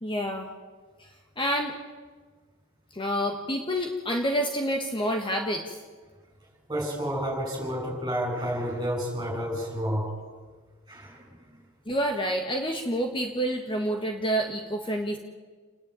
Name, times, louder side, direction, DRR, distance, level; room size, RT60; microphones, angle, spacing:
voice 1, 0.0-0.5 1.0-1.1 1.4-1.7 2.9-5.8 11.9-15.2, equal, 25° left, 3 dB, 1.4 m, -28 dB
voice 2, 6.7-10.1 10.9-11.4, equal, 20° right, 0 dB, 6.9 m, -30 dB
29.0 x 10.5 x 9.0 m, 1.5 s
head